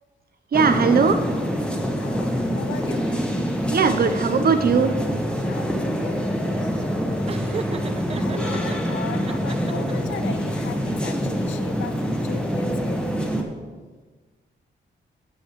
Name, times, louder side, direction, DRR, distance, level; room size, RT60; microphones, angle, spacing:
sound 1, 0.5-13.4, equal, 5° left, 1.4 m, -25 dB
voice 1, 0.5-1.2 3.7-5.0, right 5 dB, 50° right, 9 dB, 0.8 m, -19 dB
voice 2, 2.0-3.1 5.4-6.2 6.6-7.8 8.1-13.0, left 7 dB, 80° left, 10 dB, 0.6 m, -38 dB
Laughter, 7.3-8.8 9.2-10.1, right 6 dB, 30° right, 0.4 m, -35 dB
13.0 x 7.8 x 3.2 m, 1.4 s
cardioid pair, 75°, 19 cm